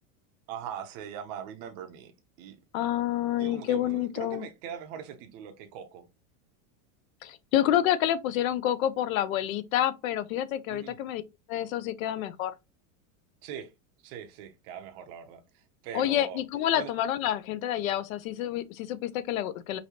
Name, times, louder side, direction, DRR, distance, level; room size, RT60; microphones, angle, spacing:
voice 1, 0.5-2.1 2.4-2.6 3.4-6.1 10.7-11.0 13.4-13.7 14.0-16.4 16.8-16.9, right 8 dB, 30° right, 0.5 m, -41 dB
voice 2, 2.7-4.4 7.2-11.2 11.5-12.5 15.9-19.8, left 12 dB, 75° left, 0.6 m, -28 dB
4.8 x 2.6 x 2.8 m
supercardioid pair, 175°, 41 cm